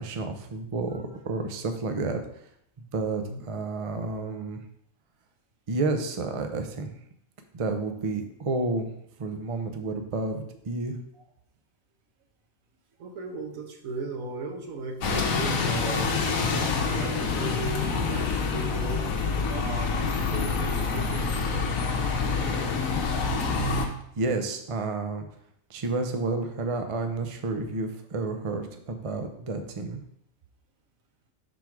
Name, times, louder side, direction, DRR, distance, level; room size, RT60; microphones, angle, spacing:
voice 1, 0.0-2.2 2.9-4.6 5.7-6.9 7.5-8.9 9.2-11.0 24.2-25.3 25.7-30.0, right 3 dB, 40° right, 6 dB, 0.5 m, -30 dB
voice 2, 13.0-19.1 19.5-22.3, right 3 dB, 80° right, 4 dB, 1.4 m, -37 dB
Bus, 15.0-23.9, left 4 dB, 80° left, 1.2 m, -27 dB
4.7 x 4.1 x 5.8 m, 0.71 s
omnidirectional pair, 1.4 m